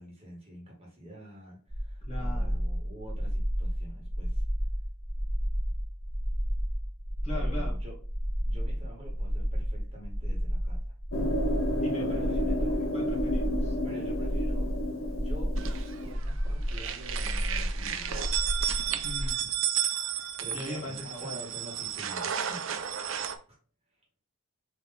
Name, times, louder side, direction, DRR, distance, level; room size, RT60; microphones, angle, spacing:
voice 1, 0.0-4.4 7.3-7.9 8.4-10.9 12.1-12.8 13.8-14.7 15.1-18.3 20.4-22.6, equal, 30° right, -3 dB, 1.7 m, -47 dB
sound 1, 1.7-19.3, equal, 5° left, 1.1 m, -31 dB
voice 2, 2.1-2.6 7.2-7.7 11.8-12.4 12.9-13.8 19.0-19.5 20.5-21.4, left 1 dB, 30° left, -3 dB, 1.7 m, -39 dB
sound 2, 11.1-16.1, left 1 dB, 65° left, 0.7 m, -31 dB
sound 3, 15.6-16.3 16.6-23.4, right 10 dB, 65° right, 0.5 m, -33 dB
3.9 x 3.3 x 4.0 m, 0.38 s
head